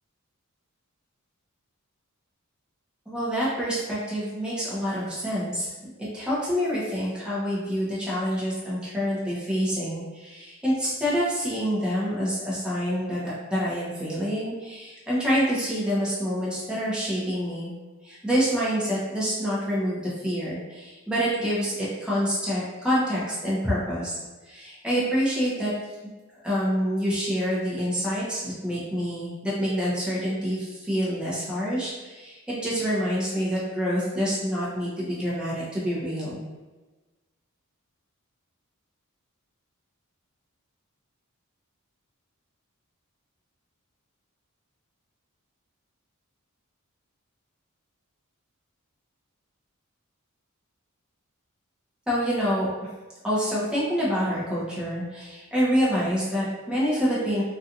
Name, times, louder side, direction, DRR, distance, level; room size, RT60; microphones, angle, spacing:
voice 1, 3.1-5.7 6.0-13.2 13.5-17.7 18.0-24.1 24.5-25.7 26.4-36.4 52.1-52.7 53.2-57.4, equal, 5° right, -8 dB, 0.7 m, -27 dB
2.7 x 2.3 x 2.5 m, 1.2 s
head